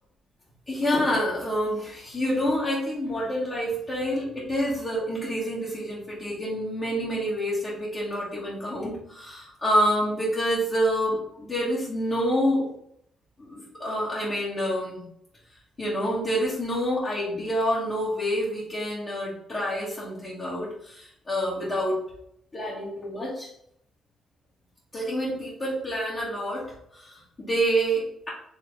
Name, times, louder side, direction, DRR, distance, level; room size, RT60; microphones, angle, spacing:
voice 1, 0.7-12.7 13.4-15.0 15.8-22.0 22.5-23.5 24.9-26.7 26.9-28.3, equal, 35° left, -8 dB, 1.7 m, -27 dB
4.8 x 3.3 x 3.3 m, 0.71 s
cardioid pair, 90°, 0 cm